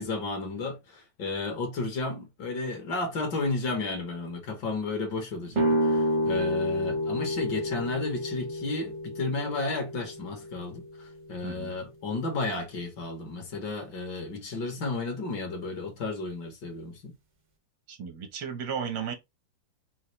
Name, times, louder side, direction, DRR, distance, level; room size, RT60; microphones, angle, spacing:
voice 1, 0.0-17.1, left 3 dB, 75° left, 2.0 m, -33 dB
sound 1, 5.5-11.3, equal, 50° right, 0.5 m, -29 dB
voice 2, 11.4-11.8 17.9-19.1, right 7 dB, 90° right, 1.8 m, -34 dB
5.6 x 2.5 x 3.2 m
omnidirectional pair, 1.9 m